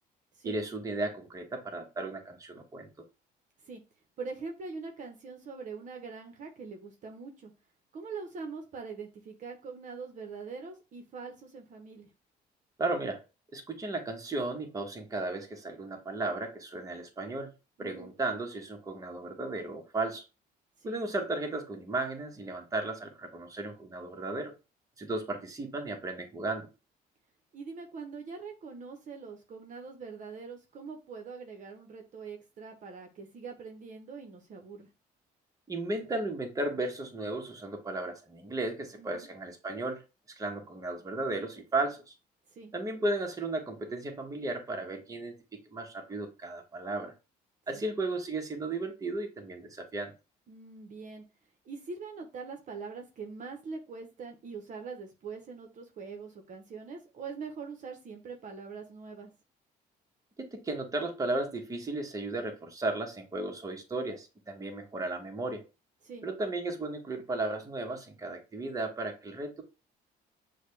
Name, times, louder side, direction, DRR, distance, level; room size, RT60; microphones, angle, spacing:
voice 1, 0.4-2.9 12.8-13.2 13.5-17.5 17.8-20.2 20.8-24.5 25.0-26.7 35.7-40.0 40.4-42.1 42.7-45.3 45.7-47.1 47.7-50.1 60.4-65.6 66.2-69.6, right 2 dB, 20° right, 1.1 m, -35 dB
voice 2, 4.2-7.5 7.9-12.1 17.8-18.1 20.8-21.0 27.5-34.9 39.0-39.3 42.5-42.7 47.7-47.8 50.5-51.2 51.6-59.3 66.0-66.3, right 4 dB, 50° right, 0.9 m, -43 dB
6.4 x 2.3 x 3.2 m
cardioid pair, 110°, 17 cm